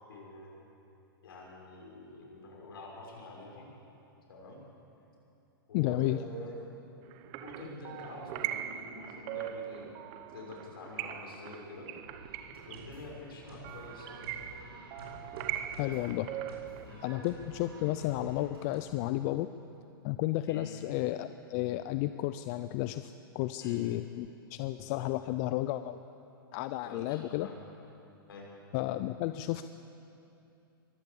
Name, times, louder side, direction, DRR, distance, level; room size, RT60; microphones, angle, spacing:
voice 1, 0.1-0.6 1.2-3.7 4.3-4.6 5.7-6.5 7.4-11.9 12.7-14.2 15.8-16.0 16.8-17.0 20.5-20.7 23.6-23.8 26.8-27.6 28.3-28.5 29.3-29.4, left 2 dB, 75° left, -1 dB, 6.6 m, -47 dB
voice 2, 5.7-6.2 15.8-16.3 17.0-19.5 20.0-26.0 26.5-27.5 28.7-29.7, left 15 dB, 45° left, 11 dB, 0.6 m, -32 dB
sound 1, 7.1-16.8, right 11 dB, 40° right, 1.0 m, -41 dB
sound 2, 12.0-18.8, right 1 dB, 85° right, 7.1 m, -49 dB
23.0 x 17.0 x 7.2 m, 2.8 s
hypercardioid pair, 115°, 12 cm